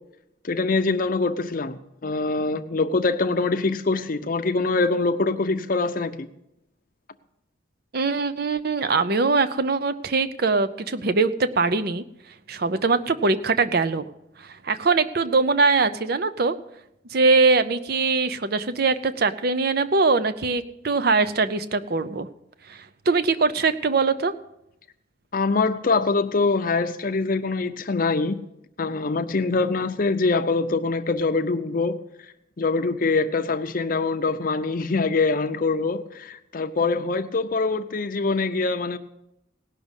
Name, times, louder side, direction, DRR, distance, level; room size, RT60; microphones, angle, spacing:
voice 1, 0.4-6.3 25.3-28.4 28.8-32.0 32.6-39.0, left 3 dB, 45° left, 0.6 m, -24 dB
voice 2, 7.9-12.0 12.5-14.1 14.4-16.5 17.1-22.3 22.7-24.3, right 4 dB, 50° right, 0.6 m, -22 dB
17.5 x 6.2 x 8.1 m
head